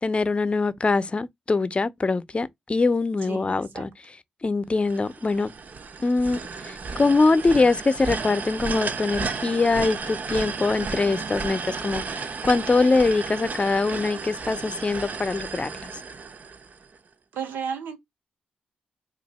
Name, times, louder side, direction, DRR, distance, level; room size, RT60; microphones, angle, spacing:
voice 1, 0.0-3.9 4.4-5.5 6.0-15.9, left 3 dB, 35° left, 0.6 m, -23 dB
voice 2, 3.3-3.9 17.3-18.0, right 6 dB, 85° right, 1.0 m, -33 dB
sound 1, 4.9-17.0, right 4 dB, 55° right, 0.6 m, -33 dB
2.7 x 2.5 x 4.2 m
supercardioid pair, 50°, 3 cm